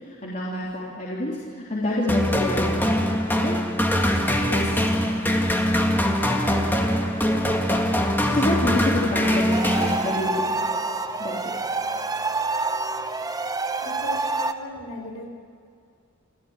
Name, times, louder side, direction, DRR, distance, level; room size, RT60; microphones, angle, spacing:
voice 1, 0.1-2.8 3.4-3.6 8.3-10.5 11.2-11.5, left 1 dB, 40° left, -5 dB, 3.4 m, -28 dB
sound 1, 2.1-10.5, equal, 10° left, 1.9 m, -22 dB
voice 2, 4.4-4.9 13.8-15.3, left 1 dB, 75° left, 3 dB, 4.3 m, -36 dB
sound 2, 9.5-14.5, right 3 dB, 20° right, 0.9 m, -27 dB
26.0 x 15.0 x 9.0 m, 2.3 s
head